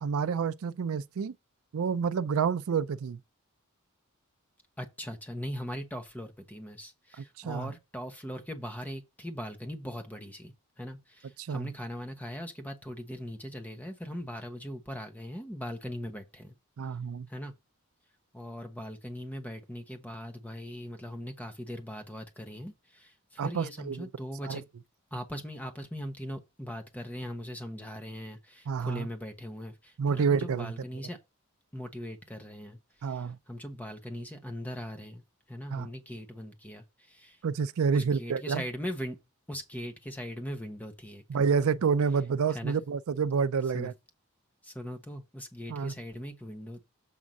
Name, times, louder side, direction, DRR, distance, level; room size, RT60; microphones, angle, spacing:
voice 1, 0.0-1.3 1.7-3.2 7.4-7.7 11.4-11.7 16.8-17.3 23.4-24.1 24.5-24.6 28.7-29.1 30.0-30.7 33.0-33.4 35.7-35.9 37.4-38.6 41.3-43.9 45.7-45.9, right 6 dB, 85° right, 0.4 m, -28 dB
voice 2, 4.8-16.6 17.3-17.5 18.3-24.6 25.1-31.2 31.7-35.2 35.5-37.4 37.9-39.2 39.5-41.2 42.5-42.8 43.7-43.9 44.6-46.8, equal, 10° left, 1.1 m, -40 dB
7.5 x 3.6 x 5.3 m
head